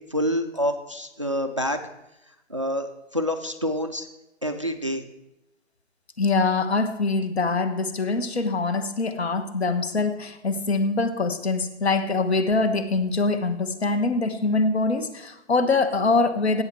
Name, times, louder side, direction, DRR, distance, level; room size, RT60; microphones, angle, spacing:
voice 1, 0.1-1.9 2.5-4.1 4.4-5.0, equal, 30° right, 8 dB, 0.4 m, -27 dB
voice 2, 6.2-16.6, left 3 dB, 70° left, 9 dB, 1.4 m, -24 dB
17.5 x 7.7 x 4.6 m, 0.91 s
hypercardioid pair, 175°, 34 cm